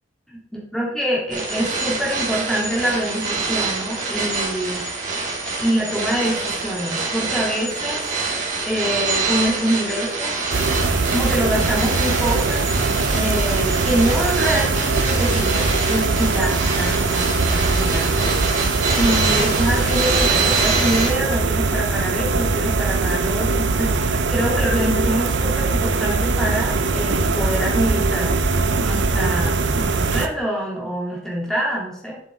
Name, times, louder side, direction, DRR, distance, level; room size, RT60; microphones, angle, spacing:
voice 1, 0.7-4.9 5.6-8.1 8.6-10.4 11.1-12.7 13.1-18.3 19.0-28.3 28.8-32.2, equal, 5° left, -4 dB, 2.5 m, -25 dB
sound 1, 1.3-21.1, right 3 dB, 40° right, 2.6 m, -25 dB
sound 2, 10.5-30.3, right 3 dB, 60° right, 0.7 m, -21 dB
9.1 x 7.6 x 3.7 m, 0.73 s
head